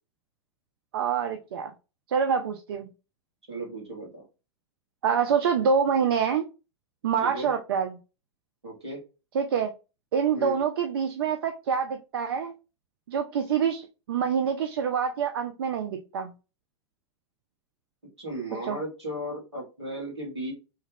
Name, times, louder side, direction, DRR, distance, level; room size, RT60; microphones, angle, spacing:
voice 1, 0.9-1.7 2.1-2.9 5.0-6.4 7.0-8.0 9.3-9.7 10.1-12.5 13.1-16.3 18.7-18.8, right 7 dB, 60° right, 0.4 m, -26 dB
voice 2, 3.5-4.3 7.2-7.5 8.6-9.0 10.3-10.6 18.2-20.5, right 1 dB, 75° right, 1.7 m, -35 dB
3.2 x 2.2 x 3.3 m
figure-of-eight pair, 90°, 14 cm